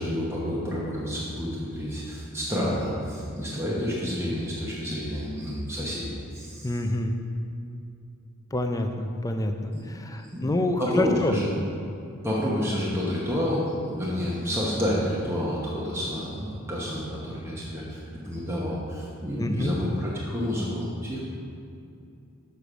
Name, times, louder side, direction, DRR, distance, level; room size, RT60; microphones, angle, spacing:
voice 1, 0.0-6.7 9.7-9.8 10.2-10.5 10.8-11.5 12.2-21.2, equal, 10° right, -6 dB, 0.9 m, -29 dB
voice 2, 6.6-7.1 8.5-11.4 19.4-19.8, left 1 dB, 15° left, 5 dB, 0.4 m, -27 dB
6.6 x 5.1 x 6.1 m, 2.6 s
head